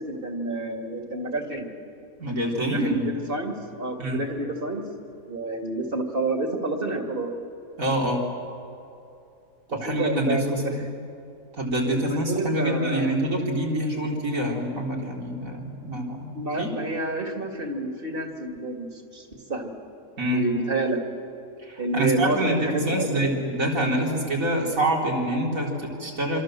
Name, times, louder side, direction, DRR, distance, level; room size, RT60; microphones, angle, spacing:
voice 1, 0.0-1.7 2.7-4.8 5.3-7.3 9.7-10.7 11.9-13.1 16.3-19.7 20.3-21.0 21.8-23.4, right 2 dB, 40° right, 4 dB, 2.7 m, -29 dB
voice 2, 2.2-3.1 4.0-4.2 7.8-8.2 9.7-10.9 11.5-16.7 20.2-20.4 21.6-26.4, right 1 dB, 80° right, -1 dB, 4.2 m, -26 dB
27.0 x 26.0 x 7.7 m, 2.7 s
omnidirectional pair, 1.4 m